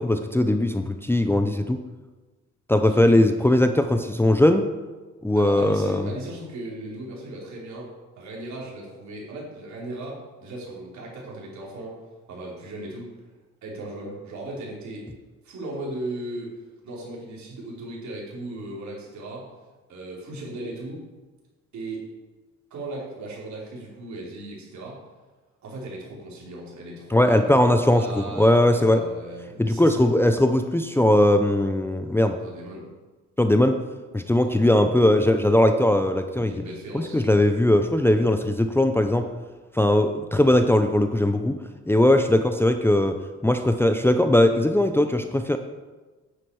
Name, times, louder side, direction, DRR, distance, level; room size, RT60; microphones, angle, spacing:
voice 1, 0.0-1.8 2.7-4.7 5.2-6.0 27.1-29.0 29.6-32.4 33.4-33.8 34.1-36.5 36.9-39.3 39.7-41.6 41.9-43.2 43.4-45.6, left 1 dB, 10° left, 7 dB, 0.6 m, -19 dB
voice 2, 2.8-3.7 5.4-7.9 8.2-12.0 12.3-13.1 13.6-15.0 15.4-19.5 19.9-21.0 21.7-22.1 22.7-25.0 25.6-30.0 32.4-32.9 34.4-34.6 36.5-37.2 42.0-42.4, right 2 dB, 65° right, -4 dB, 4.1 m, -37 dB
9.7 x 9.5 x 4.8 m, 1.3 s
cardioid pair, 90°, 30 cm